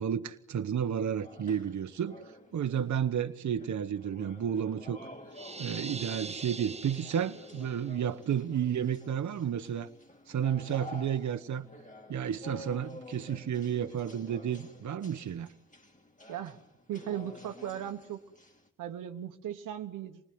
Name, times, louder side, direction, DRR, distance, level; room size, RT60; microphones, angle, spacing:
voice 1, 0.0-2.2 2.5-5.0 5.6-9.9 10.3-11.7 12.1-15.5, right 8 dB, 65° right, 9 dB, 1.2 m, -32 dB
sound 1, 1.2-18.7, left 2 dB, 25° left, 3.2 m, -51 dB
sound 2, 5.3-7.9, right 3 dB, 20° right, 1.0 m, -42 dB
voice 2, 16.3-16.6 16.9-18.2 18.8-20.2, right 10 dB, 90° right, 7 dB, 1.3 m, -37 dB
26.5 x 19.5 x 9.5 m, 0.82 s
supercardioid pair, 55°, 31 cm